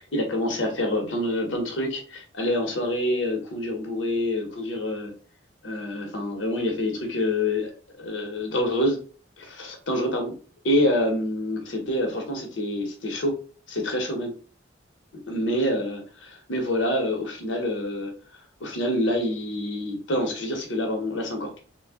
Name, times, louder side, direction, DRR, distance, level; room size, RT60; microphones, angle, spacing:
voice 1, 0.0-5.1 5.6-9.0 9.4-10.3 10.6-13.3 13.7-14.3 15.3-18.1 18.6-21.6, left 1 dB, 85° left, 2 dB, 1.0 m, -27 dB
3.2 x 2.3 x 3.5 m, 0.38 s
head